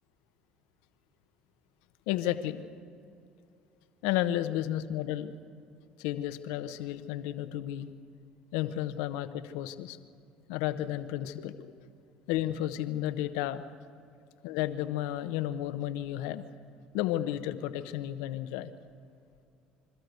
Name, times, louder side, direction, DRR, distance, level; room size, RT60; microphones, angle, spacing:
voice 1, 2.1-2.6 4.0-5.3 6.0-7.9 8.5-10.0 10.5-11.7 12.3-13.6 14.4-16.4 16.9-18.7, left 13 dB, 80° left, 10 dB, 1.0 m, -32 dB
26.0 x 13.0 x 8.2 m, 2.4 s
supercardioid pair, 85°, 3 cm